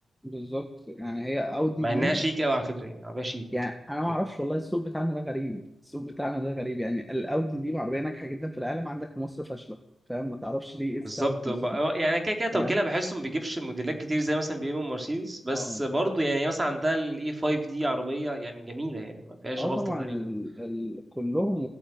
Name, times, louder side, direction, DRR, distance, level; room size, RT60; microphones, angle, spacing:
voice 1, 0.2-2.2 3.5-9.8 10.1-11.6 12.5-12.8 15.5-15.8 19.6-21.7, equal, ahead, 4 dB, 1.5 m, -31 dB
voice 2, 1.8-3.5 11.0-20.2, right 1 dB, 25° right, 4 dB, 3.7 m, -29 dB
16.5 x 9.1 x 9.3 m, 0.85 s
cardioid pair, 50°, 0 cm